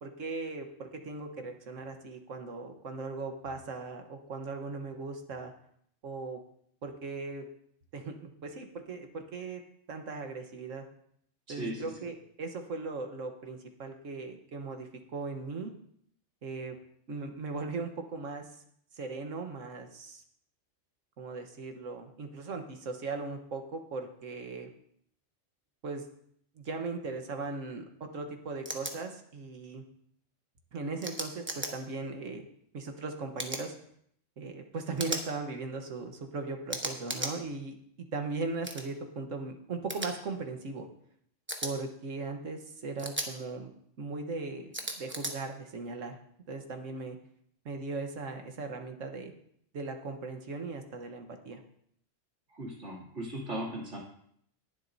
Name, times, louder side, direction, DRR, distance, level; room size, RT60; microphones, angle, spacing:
voice 1, 0.0-5.5 6.0-6.4 6.8-7.5 7.9-9.6 9.9-10.9 11.5-15.7 16.4-16.8 17.1-18.5 18.9-20.2 21.2-24.7 25.8-26.0 26.6-29.8 30.7-32.4 32.7-33.7 34.4-40.9 41.6-43.7 44.0-46.2 46.5-47.2 47.7-49.3 49.7-51.6, right 3 dB, 85° right, 5 dB, 1.6 m, -38 dB
voice 2, 11.5-11.9 52.5-54.0, right 1 dB, 65° right, -4 dB, 3.3 m, -37 dB
sound 1, 28.7-28.9 31.0-31.7 33.4-33.6 35.0-35.2 36.7-37.3 38.6-38.8 39.9-40.1 41.5-41.7 43.0-43.3 44.7-45.3, right 1 dB, 10° right, 1.0 m, -35 dB
19.5 x 7.5 x 2.7 m, 0.67 s
omnidirectional pair, 1.3 m